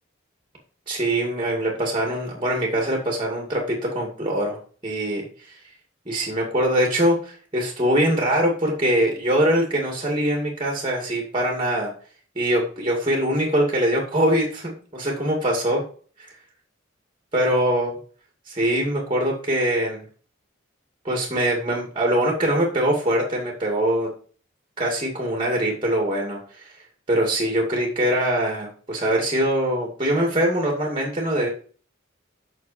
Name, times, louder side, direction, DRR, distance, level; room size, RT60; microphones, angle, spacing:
voice 1, 0.9-4.6 4.8-5.6 6.1-11.9 12.4-15.8 16.2-16.3 17.3-18.0 18.5-20.0 21.0-24.1 24.8-26.7 27.1-31.5, right 1 dB, 25° right, 1 dB, 2.2 m, -23 dB
8.4 x 6.2 x 4.3 m, 0.42 s
head